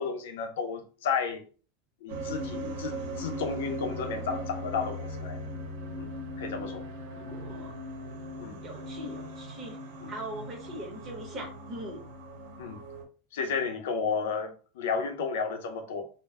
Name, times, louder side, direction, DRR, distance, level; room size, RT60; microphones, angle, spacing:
voice 1, 0.0-1.4 2.0-5.4 6.0-6.1 6.4-6.8 8.4-8.6 10.0-10.1 12.6-12.8 13.3-16.1, left 5 dB, 85° left, 0.5 m, -32 dB
sound 1, 2.1-13.0, equal, 70° right, 0.8 m, -39 dB
voice 2, 7.1-7.7 8.6-9.8 10.1-12.0, right 1 dB, 25° right, 0.8 m, -41 dB
2.1 x 2.0 x 3.4 m
supercardioid pair, 180°, 0 cm